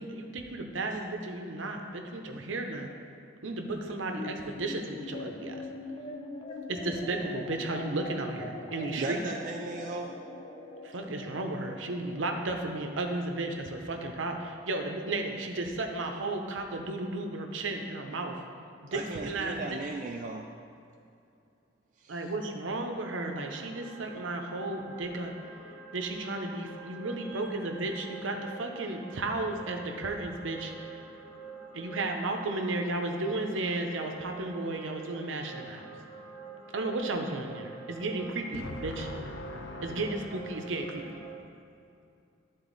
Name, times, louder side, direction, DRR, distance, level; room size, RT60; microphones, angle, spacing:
voice 1, 0.0-2.9 3.4-5.7 6.7-9.2 10.8-18.4 18.9-19.8 22.1-25.6 25.9-31.0 31.7-35.9 36.7-39.1 39.8-41.2, right 2 dB, 80° right, 3 dB, 0.7 m, -34 dB
sound 1, 4.2-16.8, left 2 dB, 25° left, 0.5 m, -43 dB
voice 2, 8.9-10.2 18.9-20.5 22.0-22.3 27.2-27.5 39.8-40.2, right 3 dB, 40° right, 1 dB, 0.3 m, -37 dB
sound 2, 23.2-41.4, right 4 dB, 5° right, 1.4 m, -47 dB
voice 3, 38.5-40.8 41.3-41.7, left 2 dB, 85° left, 5 dB, 0.6 m, -43 dB
10.0 x 3.9 x 4.0 m, 2.5 s
head